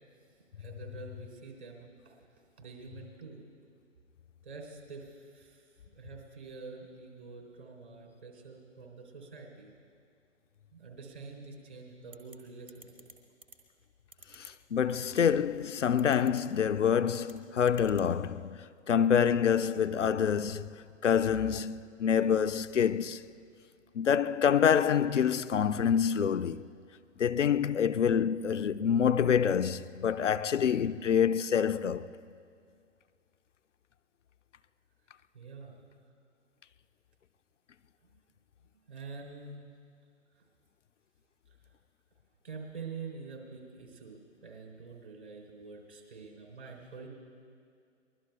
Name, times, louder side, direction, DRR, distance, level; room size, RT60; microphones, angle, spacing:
voice 1, 0.3-3.4 4.4-9.7 10.7-13.1 35.3-35.8 38.1-38.3 38.7-39.7 42.4-47.1, right 4 dB, 60° right, 4.0 m, -47 dB
sound 1, 12.1-12.4 12.7-13.1 13.4-13.6 14.1-14.5 15.0-15.2 16.0-16.4 17.1-17.3 17.7-18.1, right 2 dB, 10° right, 0.4 m, -51 dB
voice 2, 14.4-18.6 18.9-20.8 21.0-23.2 23.9-26.6 27.2-32.1, left 8 dB, 75° left, 0.5 m, -27 dB
23.5 x 21.0 x 2.4 m
figure-of-eight pair, 125°, 37 cm